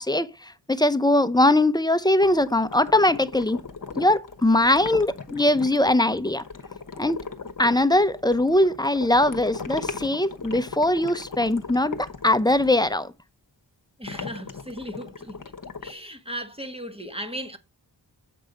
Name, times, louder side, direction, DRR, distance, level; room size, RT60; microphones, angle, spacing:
voice 1, 0.0-3.6 4.0-6.4 7.0-7.2 7.6-13.1, left 1 dB, 10° left, 0.6 m, -21 dB
sound 1, 2.2-13.0 14.0-15.9, left 5 dB, 50° left, 1.2 m, -38 dB
voice 2, 14.0-15.4 15.8-17.6, equal, 15° right, 1.4 m, -36 dB
7.8 x 5.4 x 5.2 m
wide cardioid pair, 60°, 42 cm